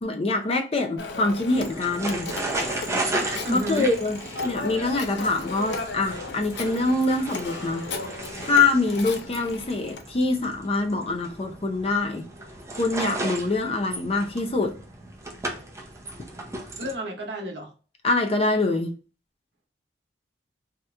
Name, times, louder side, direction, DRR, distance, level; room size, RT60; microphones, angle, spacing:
voice 1, 0.0-2.3 3.5-7.9 8.4-12.2 12.8-14.7 18.0-18.9, left 3 dB, 35° left, 0.5 m, -24 dB
Telephone, 1.0-10.1, left 3 dB, 80° left, 0.5 m, -36 dB
sound 1, 1.5-16.9, right 2 dB, 15° right, 0.6 m, -35 dB
voice 2, 3.4-3.9 16.8-17.7, equal, 80° right, 0.9 m, -30 dB
2.9 x 2.4 x 3.2 m
head